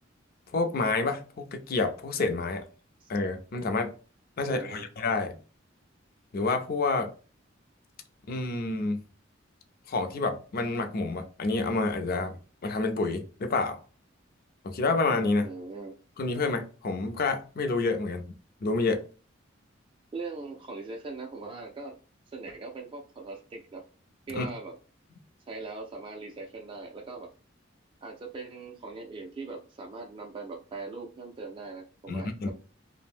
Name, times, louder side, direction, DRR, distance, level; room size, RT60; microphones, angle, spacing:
voice 1, 0.5-2.6 3.1-3.9 4.4-5.4 6.3-7.1 8.3-9.0 9.9-12.4 12.6-13.8 14.6-15.5 16.2-18.3 18.6-19.0 24.3-24.5 32.1-32.5, left 3 dB, 50° left, 0.4 m, -28 dB
voice 2, 4.4-4.9 15.4-15.9 20.1-22.0 22.3-23.8 24.3-24.8 25.5-27.3 28.0-32.5, right 3 dB, 25° right, 0.3 m, -40 dB
2.5 x 2.0 x 3.4 m
head